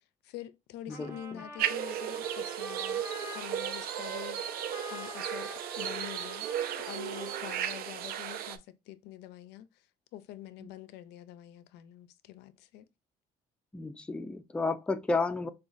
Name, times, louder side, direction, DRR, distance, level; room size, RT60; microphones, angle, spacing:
voice 1, 0.2-3.0 3.3-6.5 6.8-9.7 10.1-12.9, left 13 dB, 85° left, 0.4 m, -46 dB
voice 2, 0.9-1.4 10.6-10.7 13.7-15.5, left 3 dB, 5° left, 0.3 m, -32 dB
Trumpet, 0.9-8.0, equal, 15° right, 0.9 m, -46 dB
sound 1, 1.6-8.6, right 10 dB, 65° right, 0.4 m, -35 dB
4.9 x 2.2 x 2.4 m
cardioid pair, 110°, 17 cm